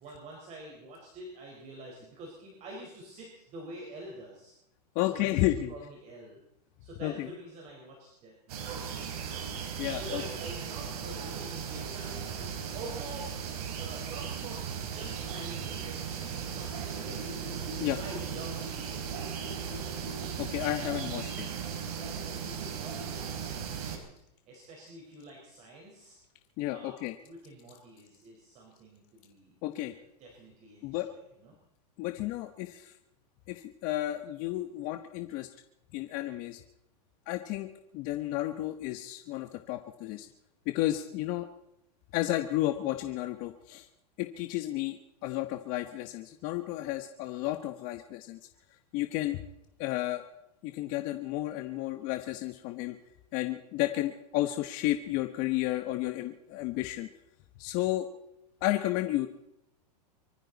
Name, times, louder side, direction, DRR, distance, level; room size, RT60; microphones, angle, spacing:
voice 1, 0.0-4.5 5.0-6.4 6.8-9.2 9.9-13.3 13.8-17.2 18.0-19.5 22.0-24.2 24.5-26.2 26.7-29.6 29.9-31.6, right 1 dB, 35° right, -1 dB, 4.7 m, -47 dB
voice 2, 4.9-5.7 7.0-7.3 9.8-10.2 17.8-18.0 20.4-21.5 26.6-27.1 29.6-29.9 30.8-31.1 32.0-32.9 33.5-35.5 35.9-36.6 37.3-40.3 40.7-41.5 42.1-43.9 44.2-48.4 48.9-49.4 49.8-50.2 50.6-53.0 53.3-57.1 57.6-58.1 58.6-59.3, left 15 dB, 40° left, 7 dB, 1.2 m, -32 dB
sound 1, 8.5-24.0, right 7 dB, 65° right, 4.3 m, -37 dB
24.5 x 14.5 x 4.1 m, 0.82 s
supercardioid pair, 135°, 21 cm